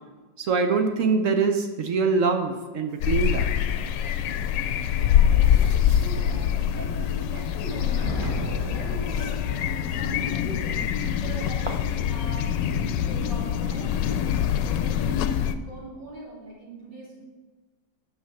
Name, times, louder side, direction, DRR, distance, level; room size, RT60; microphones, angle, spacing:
voice 1, 0.4-3.5, right 4 dB, 60° right, 6 dB, 0.9 m, -24 dB
sound 1, 2.9-12.0, right 1 dB, 25° right, 0.6 m, -44 dB
sound 2, 3.0-15.5, left 9 dB, 80° left, 1.2 m, -24 dB
voice 2, 4.9-11.7 12.0-14.1 14.6-17.2, right 1 dB, 80° right, -6 dB, 3.9 m, -41 dB
Thunder, 8.0-10.2, equal, 20° left, 3.3 m, -34 dB
9.3 x 5.8 x 5.9 m, 1.3 s
omnidirectional pair, 1.9 m